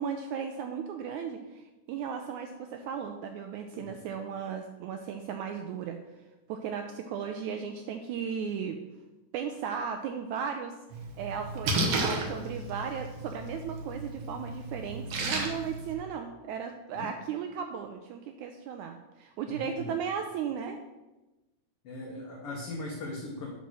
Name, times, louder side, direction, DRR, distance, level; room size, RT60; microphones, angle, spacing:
voice 1, 0.0-6.0 6.5-8.8 9.3-20.8, right 7 dB, 85° right, 5 dB, 1.7 m, -36 dB
Splash splatter, 10.9-15.9, right 2 dB, 60° right, 1.7 m, -33 dB
voice 2, 19.5-19.9 21.8-23.5, left 2 dB, 65° left, -2 dB, 1.4 m, -39 dB
8.2 x 4.2 x 6.2 m, 1.1 s
omnidirectional pair, 3.8 m